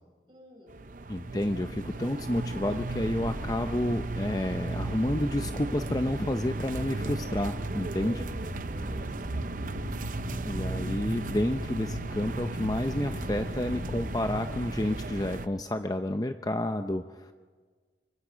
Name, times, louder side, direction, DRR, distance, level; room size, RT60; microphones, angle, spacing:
voice 1, 0.3-0.8 1.9-2.1 8.4-9.4, equal, 30° right, -1 dB, 6.7 m, -52 dB
sound 1, 0.7-15.5, right 2 dB, 45° right, 0.7 m, -35 dB
voice 2, 1.1-8.2 10.4-17.3, left 1 dB, 20° left, 7 dB, 0.6 m, -30 dB
sound 2, 1.3-14.4, left 1 dB, 85° left, 2.2 m, -42 dB
25.5 x 24.5 x 5.1 m, 1.5 s
head